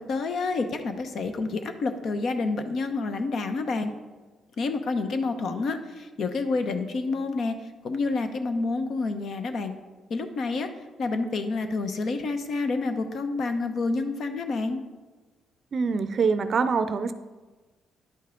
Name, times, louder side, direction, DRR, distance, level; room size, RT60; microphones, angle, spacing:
voice 1, 0.1-3.9 4.6-7.5 7.8-9.7 10.1-10.7 11.0-14.8, left 3 dB, 60° left, 8 dB, 0.8 m, -28 dB
voice 2, 15.7-17.1, right 5 dB, 50° right, 12 dB, 0.5 m, -24 dB
10.5 x 5.5 x 3.7 m, 1.3 s
cardioid pair, 90°, 0 cm